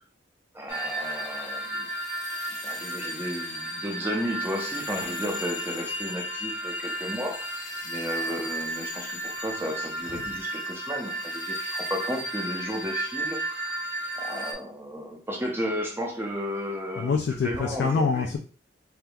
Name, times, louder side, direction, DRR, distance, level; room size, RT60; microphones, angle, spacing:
voice 1, 0.5-1.9 2.6-13.8 14.2-17.1 17.4-18.2, equal, 15° right, 1 dB, 0.6 m, -33 dB
sound 1, 0.7-14.5, right 1 dB, 85° left, 0.9 m, -33 dB
voice 2, 17.0-18.4, left 4 dB, 65° left, 2 dB, 0.3 m, -26 dB
3.4 x 2.9 x 2.3 m, 0.39 s
head